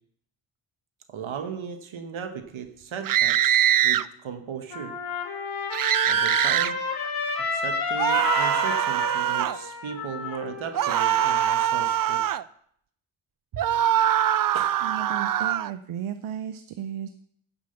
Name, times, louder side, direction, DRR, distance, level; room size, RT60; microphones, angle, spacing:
voice 1, 1.1-5.0 6.0-6.9 7.4-12.2 13.5-13.7 14.5-14.7, right 7 dB, 70° right, 8 dB, 1.2 m, -37 dB
sound 1, 3.0-4.0 5.7-6.7 8.0-9.6 10.7-12.4 13.6-15.7, right 11 dB, 45° right, 0.4 m, -23 dB
Trumpet, 4.7-11.3, left 4 dB, 45° left, 3.0 m, -31 dB
voice 2, 14.8-17.1, right 9 dB, 85° right, 10 dB, 0.7 m, -34 dB
9.7 x 7.2 x 6.6 m, 0.66 s
cardioid pair, 80°, 49 cm